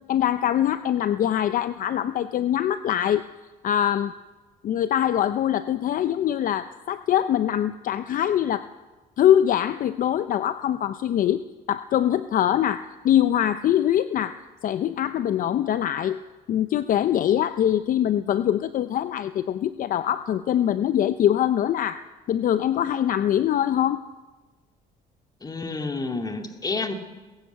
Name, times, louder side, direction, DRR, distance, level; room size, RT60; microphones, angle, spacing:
voice 1, 0.1-3.3 3.6-4.1 4.6-8.6 9.2-11.4 11.7-16.2 16.5-24.0, left 10 dB, 55° left, 12 dB, 0.6 m, -23 dB
voice 2, 25.4-26.9, left 3 dB, 20° left, 5 dB, 2.2 m, -29 dB
20.5 x 16.0 x 8.0 m, 1.2 s
cardioid pair, 110°, 17 cm